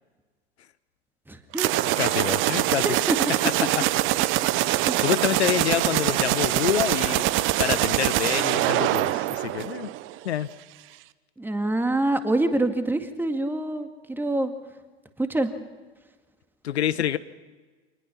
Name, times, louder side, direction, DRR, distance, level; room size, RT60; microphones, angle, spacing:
voice 1, 1.3-1.7 2.8-3.2 4.9-5.0 11.4-14.5 15.2-15.5, right 2 dB, 5° right, 7 dB, 2.0 m, -25 dB
sound 1, 1.5-10.2, right 16 dB, 40° right, 0.8 m, -24 dB
voice 2, 2.0-3.0 3.6-3.9 4.7-9.9 10.2-10.5 16.6-17.2, left 10 dB, 75° left, 14 dB, 1.0 m, -27 dB
25.5 x 20.0 x 5.8 m, 1.4 s
figure-of-eight pair, 90°, 33 cm